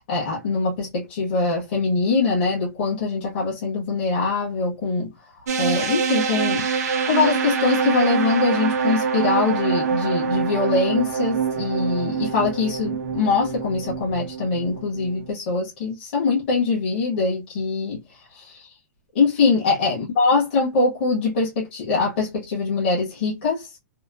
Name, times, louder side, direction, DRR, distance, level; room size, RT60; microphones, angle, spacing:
voice 1, 0.1-5.1 5.6-18.0 18.3-18.6 19.1-23.7, left 4 dB, 35° left, 1.0 m, -23 dB
sound 1, 5.5-15.3, right 6 dB, 65° right, 0.8 m, -25 dB
2.8 x 2.1 x 2.3 m
hypercardioid pair, 180°, 10 cm